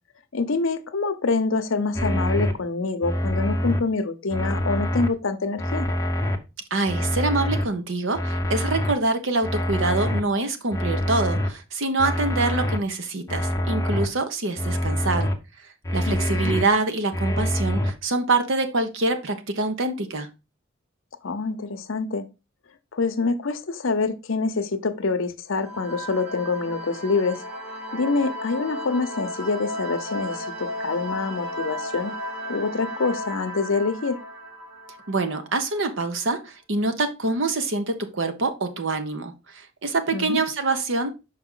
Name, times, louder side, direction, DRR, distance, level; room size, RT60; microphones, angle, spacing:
voice 1, 0.3-5.9 16.1-16.5 21.2-22.2 22.9-27.4 27.9-32.1 32.5-34.2 40.1-40.4, left 4 dB, 70° left, 0.7 m, -26 dB
sound 1, 2.0-2.5 3.0-3.8 4.3-5.1 5.6-6.4 6.9-7.6 8.1-8.9 9.4-10.2 10.7-11.5 12.0-12.8 13.3-14.1 14.6-15.3 15.8-16.7 17.1-17.9, equal, 15° left, 0.7 m, -25 dB
voice 2, 6.7-15.3 15.9-20.3 35.1-41.1, right 3 dB, 65° right, 0.9 m, -25 dB
sound 2, 25.6-36.0, equal, 80° right, 2.1 m, -34 dB
5.9 x 4.8 x 3.7 m
head